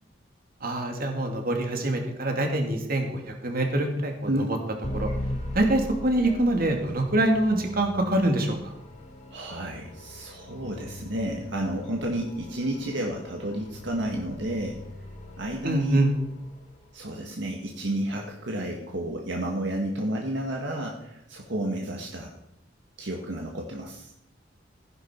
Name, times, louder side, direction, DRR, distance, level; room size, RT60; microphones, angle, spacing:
voice 1, 0.6-4.5 4.9-5.1 5.5-8.7 15.6-16.1, right 1 dB, 55° right, 3 dB, 2.4 m, -25 dB
sound 1, 4.8-17.0, left 1 dB, 40° left, 3.8 m, -39 dB
voice 2, 9.3-14.8 15.4-16.0 16.9-22.3 23.0-24.1, right 1 dB, 70° right, 0 dB, 1.7 m, -31 dB
15.0 x 11.0 x 4.5 m, 0.79 s
head